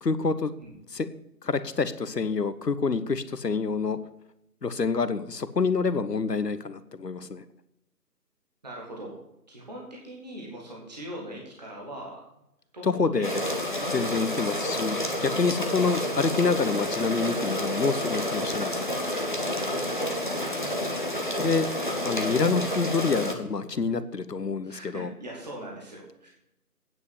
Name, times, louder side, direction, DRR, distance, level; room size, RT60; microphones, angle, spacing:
voice 1, 0.0-0.5 0.9-1.1 1.4-4.0 4.6-7.4 12.8-13.4 13.8-18.9 21.4-21.7 22.0-25.1, left 4 dB, 80° left, 13 dB, 0.9 m, -27 dB
voice 2, 8.6-9.2 9.5-12.2 12.7-13.4 19.8-20.6 24.6-26.3, right 1 dB, 25° right, -2 dB, 1.6 m, -41 dB
sound 1, 13.2-23.3, left 1 dB, 30° left, 0.9 m, -29 dB
9.3 x 5.3 x 8.0 m, 0.83 s
figure-of-eight pair, 160°, 48 cm